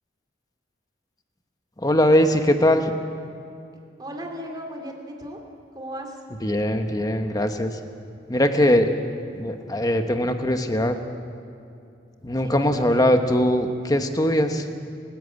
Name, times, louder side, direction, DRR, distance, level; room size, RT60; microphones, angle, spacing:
voice 1, 1.8-2.9 6.4-7.7 8.3-8.9 9.4-10.9 12.2-14.6, left 1 dB, 20° left, 6 dB, 1.2 m, -21 dB
voice 2, 4.0-5.4 5.7-6.2 12.4-12.9, equal, 25° right, 3 dB, 2.8 m, -36 dB
29.5 x 10.5 x 8.2 m, 2.6 s
head